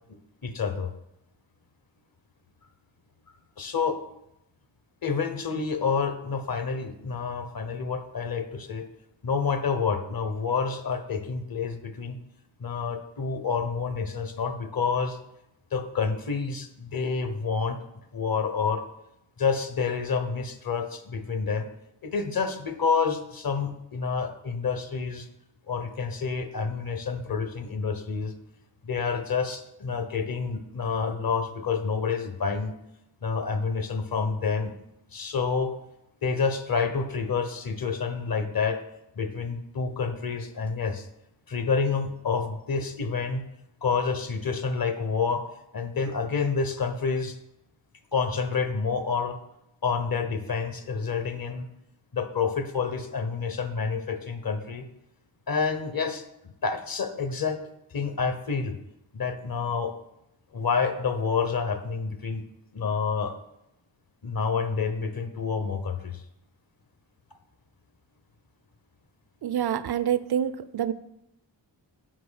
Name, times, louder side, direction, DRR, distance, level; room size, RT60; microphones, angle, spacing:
voice 1, 0.4-0.9 3.6-4.0 5.0-8.8 9.2-12.2 12.6-15.2 15.7-17.8 18.1-18.8 19.4-21.7 22.0-25.3 25.7-28.3 28.8-32.7 33.2-34.7 35.1-35.7 36.2-38.8 39.2-41.1 41.5-43.4 43.8-45.4 45.7-47.4 48.1-49.4 49.8-51.7 52.1-54.8 55.5-57.6 57.9-58.7 59.1-59.9 60.5-62.4 62.7-63.3 64.2-66.2, left 5 dB, 45° left, 8 dB, 1.0 m, -28 dB
voice 2, 69.4-70.9, right 9 dB, 55° right, 15 dB, 0.5 m, -27 dB
6.1 x 4.6 x 6.4 m, 0.83 s
cardioid pair, 55°, 47 cm